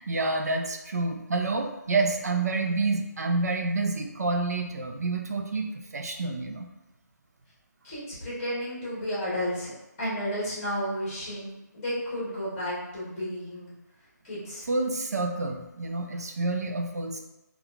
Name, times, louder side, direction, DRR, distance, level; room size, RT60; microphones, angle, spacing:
voice 1, 0.0-6.7 14.7-17.2, right 3 dB, 60° right, 4 dB, 0.4 m, -28 dB
voice 2, 7.8-9.7 10.0-13.7 14.2-14.7, equal, 15° left, -8 dB, 1.0 m, -32 dB
3.5 x 2.3 x 2.3 m, 0.97 s
figure-of-eight pair, 170°, 10 cm